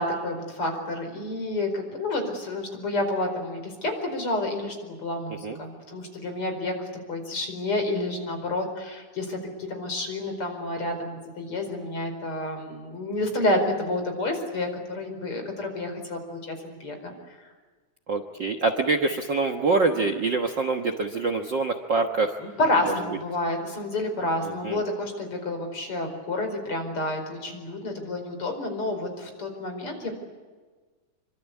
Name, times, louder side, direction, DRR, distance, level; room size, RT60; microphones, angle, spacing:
voice 1, 0.0-9.4 9.7-17.1 22.4-30.1, left 1 dB, 45° left, 5 dB, 5.6 m, -29 dB
voice 2, 18.1-22.4 22.9-23.0 24.4-24.8, right 3 dB, 50° right, 4 dB, 1.6 m, -25 dB
26.5 x 25.0 x 8.3 m, 1.4 s
omnidirectional pair, 3.4 m